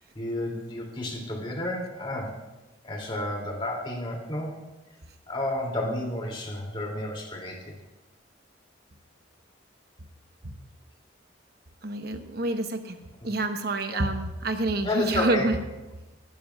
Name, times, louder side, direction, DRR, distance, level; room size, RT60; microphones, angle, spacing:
voice 1, 0.1-2.3 2.8-4.5 5.3-7.7 13.9-14.0 14.8-15.5, left 1 dB, 30° left, -1 dB, 2.6 m, -31 dB
voice 2, 11.8-13.0 13.2-15.6, right 2 dB, 55° right, 6 dB, 1.0 m, -27 dB
19.5 x 12.0 x 2.3 m, 1.1 s
head